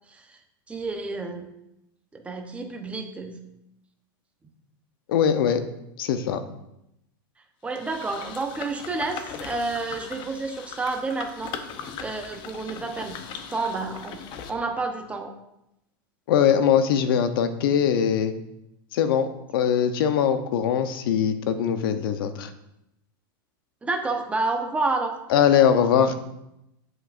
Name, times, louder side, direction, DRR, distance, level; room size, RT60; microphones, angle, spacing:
voice 1, 0.7-1.5 2.1-3.4 7.6-11.5 12.0-13.2 13.5-14.2 14.5-15.3 23.8-25.2, right 3 dB, 10° right, 3 dB, 1.0 m, -29 dB
voice 2, 5.1-5.6 6.0-6.4 16.3-18.3 18.9-22.5 25.3-26.1, left 8 dB, 75° left, 9 dB, 0.8 m, -21 dB
sound 1, 7.7-14.5, left 7 dB, 40° left, 0.8 m, -39 dB
8.5 x 7.8 x 2.6 m, 0.85 s
supercardioid pair, 140°, 12 cm